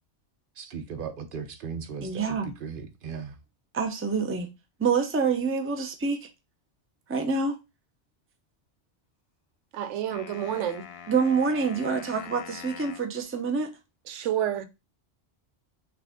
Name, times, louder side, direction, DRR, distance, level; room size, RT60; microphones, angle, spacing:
voice 1, 0.6-3.4, right 6 dB, 55° right, 0.8 m, -37 dB
voice 2, 2.0-2.5 3.7-4.5 4.8-6.3 7.1-7.6 11.1-13.7, right 5 dB, 15° right, 0.5 m, -26 dB
voice 3, 9.7-10.8 14.1-14.7, right 11 dB, 90° right, 0.9 m, -29 dB
sound 1, 10.1-13.1, left 8 dB, 65° left, 0.8 m, -44 dB
6.0 x 2.4 x 3.5 m
omnidirectional pair, 1.2 m